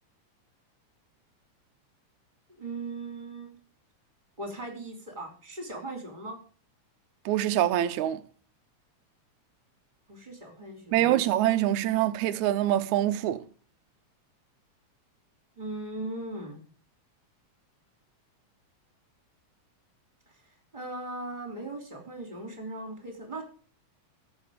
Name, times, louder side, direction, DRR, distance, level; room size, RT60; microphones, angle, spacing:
voice 1, 2.6-3.6 4.4-6.4 10.1-11.2 15.6-16.6 20.7-23.4, right 2 dB, 15° right, 3.3 m, -38 dB
voice 2, 7.3-8.2 10.9-13.5, right 13 dB, 80° right, 2.1 m, -25 dB
14.0 x 7.6 x 5.0 m
omnidirectional pair, 3.3 m